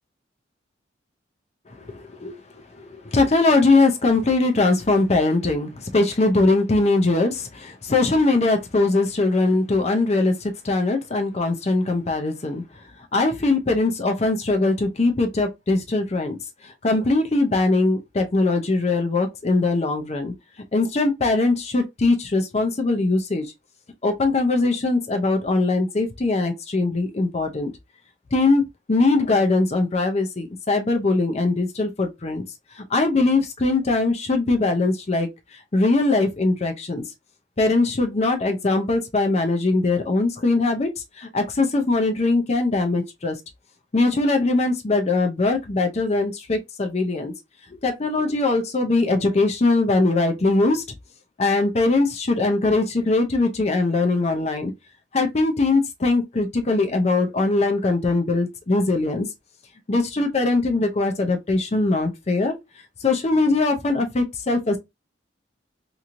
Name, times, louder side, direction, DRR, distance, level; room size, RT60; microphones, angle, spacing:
voice 1, 1.8-12.6 13.1-16.4 16.6-20.3 20.7-23.5 24.0-27.7 28.3-32.4 32.7-35.3 35.7-37.0 37.6-40.9 41.2-43.4 43.9-47.3 47.8-50.8 51.4-54.7 55.1-59.3 59.9-62.5 63.0-64.8, left 3 dB, 35° left, 0.5 m, -21 dB
2.9 x 2.7 x 2.4 m
head